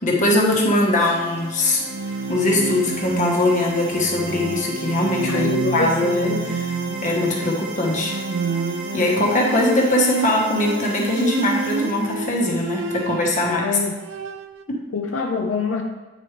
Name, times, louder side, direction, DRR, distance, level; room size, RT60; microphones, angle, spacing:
voice 1, 0.0-1.8 2.3-8.2 8.9-13.7 14.7-14.8, left 1 dB, 40° left, -1 dB, 1.2 m, -21 dB
sound 1, 0.5-13.2, right 1 dB, 90° right, 1.1 m, -35 dB
Bowed string instrument, 1.7-13.5 13.8-14.6, right 4 dB, 65° right, 0.4 m, -29 dB
voice 2, 5.2-6.1 13.6-13.9 14.9-15.8, left 3 dB, 85° left, 2 dB, 0.6 m, -25 dB
8.8 x 5.0 x 3.2 m, 1.2 s
head